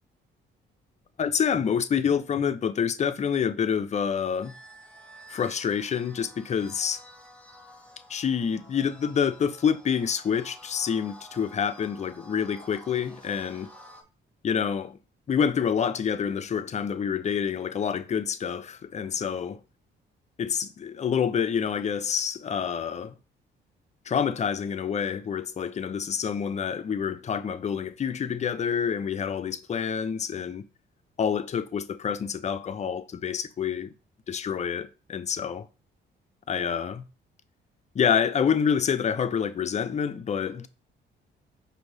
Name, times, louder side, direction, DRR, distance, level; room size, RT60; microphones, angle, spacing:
voice 1, 1.2-4.5 5.3-7.0 8.1-13.7 14.4-15.0 15.3-19.6 20.4-23.2 24.1-30.6 31.2-33.9 34.3-35.7 36.5-37.0 37.9-40.7, left 7 dB, 35° left, 0.5 m, -27 dB
sound 1, 4.4-14.0, equal, 5° left, 0.8 m, -50 dB
5.1 x 2.6 x 3.2 m
cardioid pair, 90°, 20 cm